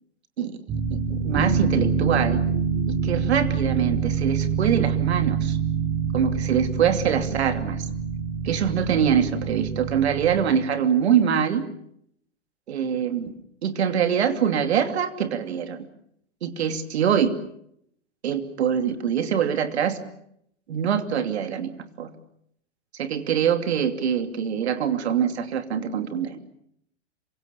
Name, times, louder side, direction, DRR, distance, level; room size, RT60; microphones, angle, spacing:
voice 1, 0.4-2.4 2.9-5.6 6.1-7.9 8.4-11.7 12.7-13.3 13.6-15.9 16.4-17.3 18.2-20.0 20.7-21.7 22.0-22.1 22.9-26.4, right 8 dB, 65° right, 8 dB, 2.8 m, -24 dB
sound 1, 0.7-10.6, right 6 dB, 30° right, 3.1 m, -26 dB
27.0 x 24.5 x 6.9 m, 0.73 s
figure-of-eight pair, 105°, 35 cm